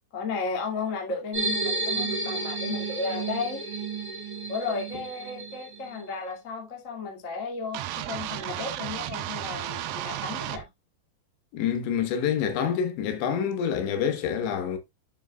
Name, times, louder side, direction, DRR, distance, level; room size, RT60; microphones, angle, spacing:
voice 1, 0.1-3.6 4.5-10.7, left 4 dB, 30° left, 1.4 m, -34 dB
sound 1, 1.3-6.0, right 3 dB, 15° right, 1.7 m, -32 dB
sound 2, 7.7-10.6, right 13 dB, 90° right, 2.0 m, -33 dB
voice 2, 11.5-14.8, left 8 dB, 85° left, 3.5 m, -27 dB
8.7 x 7.4 x 2.4 m
omnidirectional pair, 5.1 m